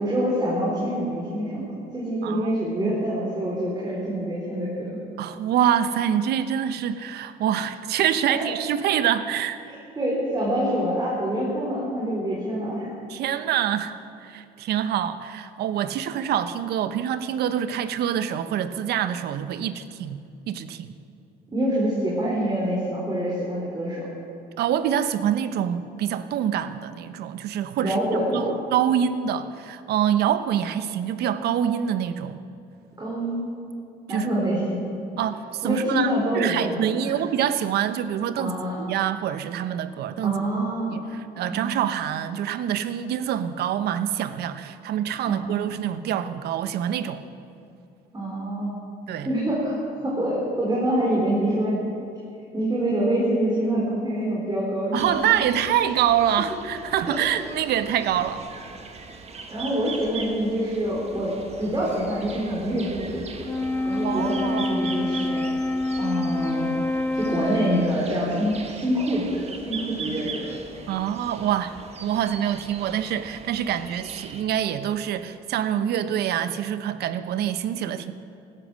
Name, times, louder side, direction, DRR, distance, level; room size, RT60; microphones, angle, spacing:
voice 1, 0.0-1.7 1.9-5.0 8.2-8.5 10.0-12.9 21.5-24.0 27.8-28.6 33.0-33.5 34.1-34.9 35.6-37.2 38.3-38.7 40.2-41.0 41.5-41.7 45.2-45.6 48.1-48.7 49.2-49.7 50.0-51.8 52.5-55.1 55.4-55.5 57.1-57.2 59.5-61.3 61.6-65.4 66.0-66.7 67.1-70.5, right 1 dB, 25° right, -6 dB, 4.4 m, -26 dB
voice 2, 2.2-2.5 2.8-3.0 5.2-9.6 13.1-20.9 24.6-28.0 28.3-32.4 34.1-34.3 35.2-40.4 40.9-41.0 41.4-47.2 49.1-49.3 54.9-58.5 64.0-64.9 70.9-71.8 72.0-78.1, right 10 dB, 70° right, 12 dB, 0.9 m, -26 dB
sound 1, 55.0-74.4, right 4 dB, 40° right, 1.6 m, -40 dB
Wind instrument woodwind instrument, 63.4-68.2, left 2 dB, 10° left, 0.6 m, -26 dB
16.5 x 13.5 x 6.4 m, 2.7 s
cardioid pair, 110°, 17 cm